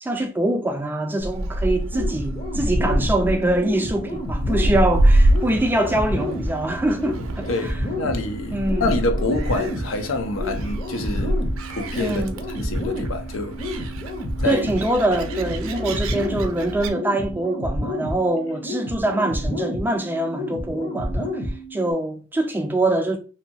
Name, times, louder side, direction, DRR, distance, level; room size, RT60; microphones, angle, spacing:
voice 1, 0.0-7.8 8.5-8.9 12.0-12.4 14.4-23.2, right 1 dB, 10° right, 0.3 m, -24 dB
Gull seagull, 1.2-16.9, right 1 dB, 90° right, 0.4 m, -26 dB
sound 1, 1.9-21.9, left 1 dB, 35° left, 0.7 m, -30 dB
voice 2, 7.5-11.4 11.7-12.3 12.6-13.6 14.4-14.7, left 2 dB, 75° left, 0.6 m, -27 dB
2.7 x 2.2 x 2.7 m
head